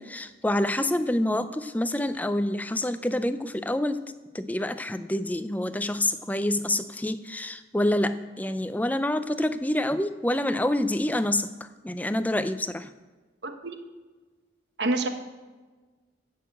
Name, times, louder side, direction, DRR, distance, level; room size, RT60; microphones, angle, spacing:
voice 1, 0.0-4.0 4.3-11.5 11.8-12.9, left 1 dB, 10° left, 11 dB, 0.5 m, -27 dB
voice 2, 13.4-13.8 14.8-15.1, right 2 dB, 65° right, 6 dB, 1.3 m, -27 dB
15.5 x 6.6 x 7.9 m, 1.3 s
head